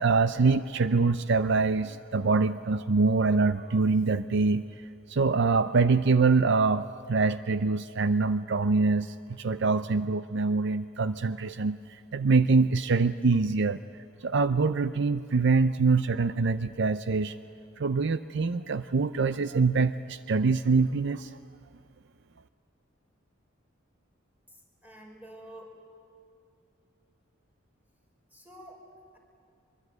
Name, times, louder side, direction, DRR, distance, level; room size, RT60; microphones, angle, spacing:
voice 1, 0.0-4.6 5.1-11.8 12.1-13.8 14.2-17.4 17.8-21.3, right 4 dB, 65° right, 12 dB, 0.6 m, -24 dB
voice 2, 24.8-25.8 28.3-28.9, right 1 dB, 10° right, 0 dB, 5.5 m, -48 dB
24.0 x 23.0 x 9.3 m, 2.5 s
head